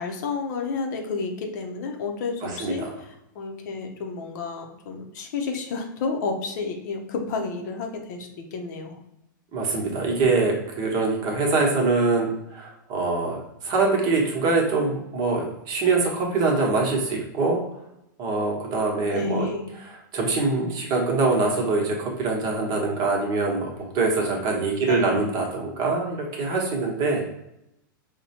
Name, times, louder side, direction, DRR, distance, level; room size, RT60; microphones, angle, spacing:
voice 1, 0.0-2.9 3.3-9.0 19.1-19.7 24.9-25.2, left 4 dB, 60° left, 3 dB, 0.6 m, -31 dB
voice 2, 2.4-3.0 9.5-17.6 18.2-19.5 19.8-27.2, right 3 dB, 35° right, -1 dB, 1.0 m, -24 dB
4.2 x 2.2 x 2.8 m, 0.85 s
hypercardioid pair, 135°, 11 cm